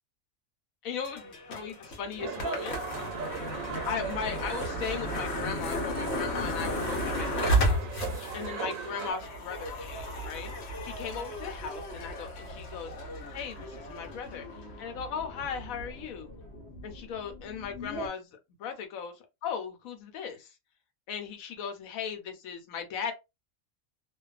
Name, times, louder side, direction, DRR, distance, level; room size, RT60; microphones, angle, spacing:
voice 1, 0.8-2.8 3.9-7.9 8.3-10.5 10.8-12.9 13.3-14.5 14.8-16.3 16.8-20.5 21.1-23.1, left 7 dB, 90° left, 1.1 m, -37 dB
sound 1, 1.0-18.1, equal, 60° left, 1.0 m, -35 dB
sound 2, 2.2-9.1, right 6 dB, 80° right, 1.0 m, -37 dB
2.4 x 2.3 x 2.3 m
omnidirectional pair, 1.4 m